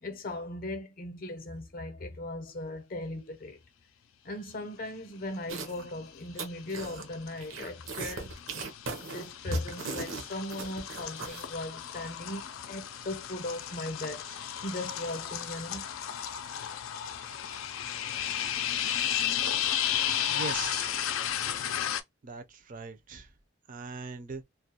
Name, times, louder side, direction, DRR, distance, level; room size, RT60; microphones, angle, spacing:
voice 1, 0.0-3.6 4.2-8.3 9.0-15.9, left 1 dB, 45° left, 0.6 m, -38 dB
Icky Worm Slime Monster, 5.5-5.9 6.2-7.1 7.4-11.5, right 4 dB, 75° right, 0.7 m, -38 dB
sound 1, 5.7-6.2 6.5-22.0, left 10 dB, 90° left, 0.4 m, -34 dB
voice 2, 20.3-21.1 22.2-23.3 23.7-24.4, right 4 dB, 40° right, 0.4 m, -40 dB
2.3 x 2.1 x 2.7 m
head